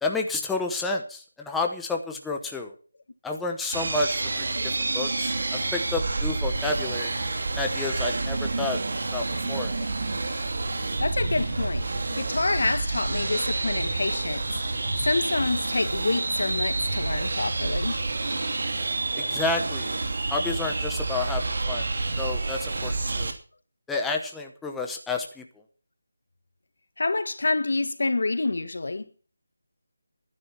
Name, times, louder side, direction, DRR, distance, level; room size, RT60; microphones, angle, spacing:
voice 1, 0.0-2.7 3.2-4.5 4.9-7.1 7.6-8.8 9.1-9.7 19.2-19.9 20.3-21.8 22.2-23.3 23.9-25.4, left 3 dB, 5° left, 0.9 m, -30 dB
sound 1, 3.7-23.3, right 3 dB, 60° right, 2.8 m, -28 dB
voice 2, 11.0-14.4 15.0-18.0 27.0-29.1, left 3 dB, 70° left, 1.7 m, -27 dB
12.5 x 10.5 x 5.9 m
figure-of-eight pair, 170°, 0 cm